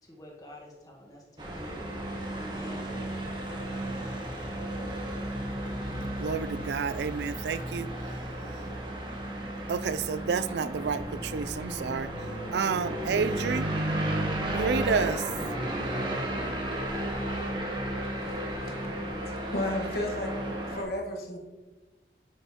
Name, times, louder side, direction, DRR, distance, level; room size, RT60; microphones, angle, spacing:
voice 1, 0.0-3.0, equal, 20° left, -2 dB, 1.4 m, -47 dB
sound 1, 1.4-20.8, right 1 dB, 25° right, 1.2 m, -33 dB
voice 2, 6.2-7.9 9.7-12.1 12.5-13.7 14.5-15.2, right 6 dB, 75° right, 14 dB, 0.4 m, -30 dB
voice 3, 18.1-18.9 19.5-20.3 20.7-21.4, left 1 dB, 60° left, 1 dB, 1.3 m, -33 dB
10.0 x 5.4 x 2.9 m, 1.2 s
head